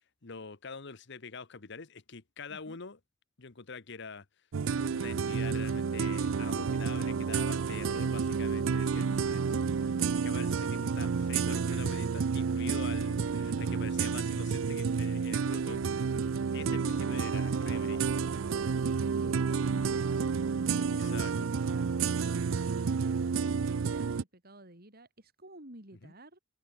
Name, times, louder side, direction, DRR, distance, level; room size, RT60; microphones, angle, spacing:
voice 1, 0.2-3.0 3.4-4.2 4.9-18.3 20.9-21.5 26.0-26.1, left 4 dB, 60° left, 1.2 m, -45 dB
voice 2, 2.5-2.8 12.9-13.7 16.7-26.4, right 1 dB, 50° right, 7.7 m, -51 dB
sound 1, 4.5-24.2, right 5 dB, 80° right, 0.5 m, -30 dB
head